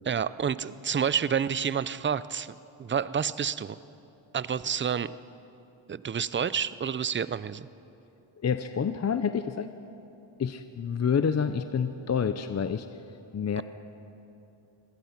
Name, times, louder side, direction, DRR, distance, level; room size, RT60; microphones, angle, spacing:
voice 1, 0.1-3.8 4.3-5.1 5.9-7.7 13.6-13.7, right 7 dB, 25° right, 16 dB, 0.5 m, -29 dB
voice 2, 8.4-9.7 10.4-12.9 13.3-13.6, left 7 dB, 30° left, 10 dB, 0.7 m, -28 dB
25.0 x 17.5 x 5.9 m, 2.8 s
cardioid pair, 100°, 50 cm